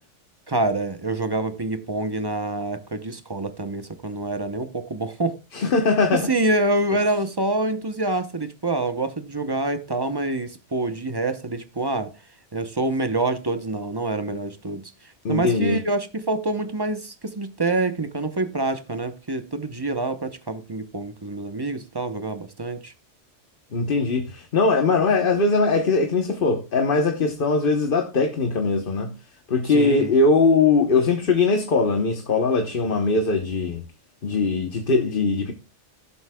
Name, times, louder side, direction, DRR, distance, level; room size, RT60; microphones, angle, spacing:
voice 1, 0.5-5.4 6.1-12.1 12.5-14.9 15.3-22.9 29.7-30.1, right 2 dB, 25° right, 0.8 m, -26 dB
voice 2, 5.5-6.3 15.2-15.8 23.7-29.1 29.5-33.8 34.2-35.5, left 3 dB, 50° left, 1.2 m, -21 dB
16.0 x 7.9 x 2.3 m
omnidirectional pair, 1.2 m